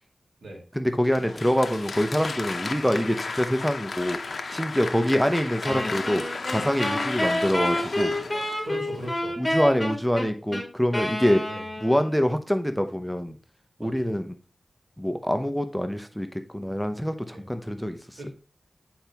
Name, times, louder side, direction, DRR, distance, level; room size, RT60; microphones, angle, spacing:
voice 1, 0.7-4.2 4.5-6.2 6.5-8.1 9.4-11.4 11.8-13.4 13.8-14.4 15.0-16.3 16.5-18.0, equal, ahead, 8 dB, 0.7 m, -25 dB
Applause, 1.0-9.1, left 3 dB, 65° left, 0.6 m, -34 dB
Wind instrument woodwind instrument, 5.6-12.2, left 1 dB, 20° left, 1.9 m, -29 dB
voice 2, 8.6-9.4 11.5-11.7 13.8-14.2 17.3-17.4 18.2-18.3, equal, 85° right, 0 dB, 2.3 m, -38 dB
8.8 x 4.6 x 2.9 m, 0.36 s
wide cardioid pair, 65°, 0 cm